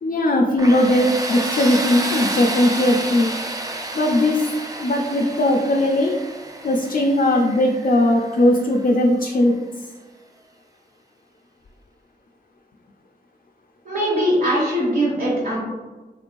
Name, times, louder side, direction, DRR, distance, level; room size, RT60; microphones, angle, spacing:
voice 1, 0.0-3.3 3.9-4.5 4.8-6.2 6.6-9.9, left 1 dB, 60° left, 0 dB, 0.4 m, -19 dB
Tools, 0.6-9.3, right 2 dB, 20° right, 0.4 m, -30 dB
voice 2, 13.8-15.6, equal, 70° right, -8 dB, 1.4 m, -21 dB
3.5 x 3.0 x 2.5 m, 1.3 s
wide cardioid pair, 55°, 17 cm